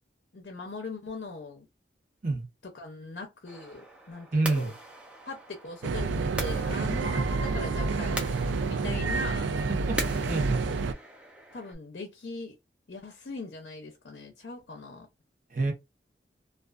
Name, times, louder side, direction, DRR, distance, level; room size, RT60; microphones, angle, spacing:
voice 1, 0.3-1.7 2.6-4.7 5.3-8.3 8.6-9.5 11.5-12.6 12.9-15.1, left 3 dB, 55° left, 0.5 m, -40 dB
sound 1, 3.5-11.8, right 1 dB, 5° right, 0.4 m, -41 dB
voice 2, 4.3-4.7 7.1-7.3 9.9-10.0 10.3-10.6 15.5-15.7, right 3 dB, 45° right, 0.8 m, -27 dB
sound 2, 5.8-10.9, right 4 dB, 75° right, 0.3 m, -29 dB
2.3 x 2.3 x 2.3 m
head